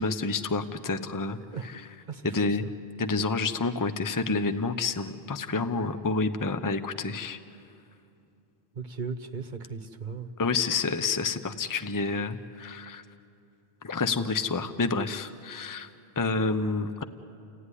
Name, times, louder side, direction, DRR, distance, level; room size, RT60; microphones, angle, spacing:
voice 1, 0.0-1.8 2.2-2.6 3.0-7.4 10.4-13.0 13.8-15.9 16.2-17.0, left 4 dB, 20° left, 10 dB, 0.7 m, -29 dB
voice 2, 2.1-2.7 8.7-10.3, right 5 dB, 45° right, 8 dB, 1.2 m, -37 dB
29.5 x 16.0 x 9.9 m, 2.7 s
omnidirectional pair, 1.1 m